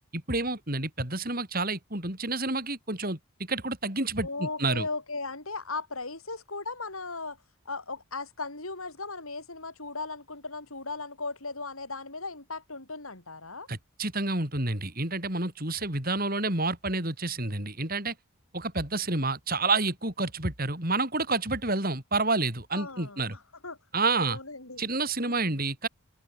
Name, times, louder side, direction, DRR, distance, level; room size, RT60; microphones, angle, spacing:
voice 1, 0.1-3.2 3.5-4.9 13.7-18.1 18.5-23.4 23.9-24.4 24.8-25.9, right 3 dB, 40° right, 5.3 m, -29 dB
voice 2, 4.2-7.4 7.7-13.7 22.7-23.8 24.1-24.8 25.3-25.6, left 3 dB, 75° left, 6.0 m, -37 dB
head